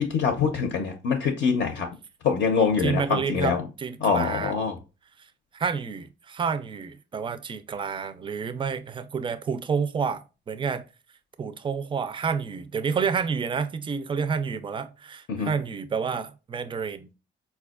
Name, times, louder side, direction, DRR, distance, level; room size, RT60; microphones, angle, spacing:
voice 1, 0.0-1.9 2.2-3.6 4.0-4.8 15.3-15.5, left 6 dB, 70° left, 0.6 m, -24 dB
voice 2, 2.8-4.5 5.5-10.8 11.4-17.1, right 6 dB, 25° right, 0.3 m, -29 dB
4.2 x 2.2 x 2.3 m
cardioid pair, 90°, 20 cm